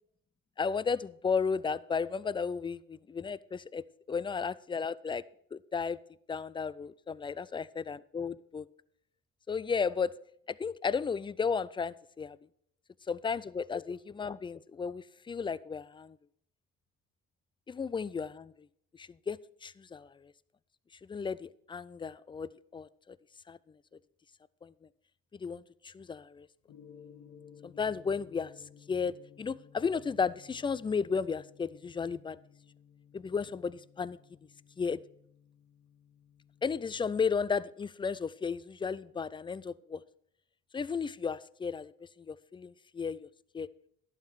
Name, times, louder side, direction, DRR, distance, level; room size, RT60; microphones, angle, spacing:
voice 1, 0.6-5.2 5.5-6.0 6.3-8.7 9.5-10.2 10.5-12.4 13.1-16.2 17.7-18.5 18.9-20.3 21.1-23.2 23.5-23.6 24.6-24.7 25.3-26.5 27.6-28.5 28.9-32.4 33.1-34.2 34.8-35.0 36.6-40.0 40.7-43.3 43.5-43.7, left 5 dB, 15° left, 20 dB, 0.3 m, -34 dB
Gong, 26.7-37.3, left 7 dB, 60° left, 1.0 m, -57 dB
11.5 x 5.8 x 6.3 m, 0.70 s
hypercardioid pair, 55°, 33 cm